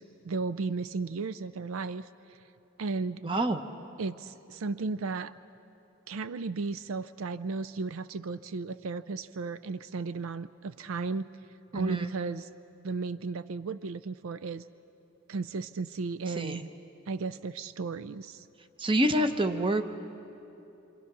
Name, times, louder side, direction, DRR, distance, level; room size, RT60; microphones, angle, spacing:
voice 1, 0.0-2.4 2.8-3.2 4.0-5.3 6.1-11.3 11.7-12.5 12.8-14.6 15.3-16.6 17.1-18.5, right 4 dB, 75° right, 14 dB, 0.4 m, -34 dB
voice 2, 3.2-3.6 11.7-12.1 16.4-16.6 18.8-19.8, right 1 dB, 25° right, 8 dB, 0.8 m, -27 dB
28.0 x 25.5 x 6.1 m, 3.0 s
head